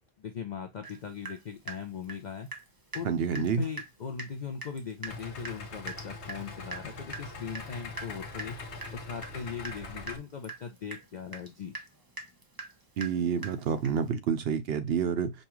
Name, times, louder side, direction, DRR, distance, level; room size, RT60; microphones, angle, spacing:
voice 1, 0.2-2.5 2.9-8.6 8.9-11.7, left 7 dB, 55° left, 0.6 m, -39 dB
Water tap faucet / Drip, 0.8-1.0 1.2-2.7 2.9-3.1 3.3-3.5 3.8-3.9 4.2-4.3 4.6-14.1, right 3 dB, 25° right, 0.7 m, -43 dB
voice 2, 3.0-3.6 13.0-15.3, right 7 dB, 70° right, 0.8 m, -28 dB
Idling, 5.1-10.2, left 3 dB, 80° left, 1.1 m, -42 dB
5.3 x 2.3 x 3.0 m
omnidirectional pair, 1.1 m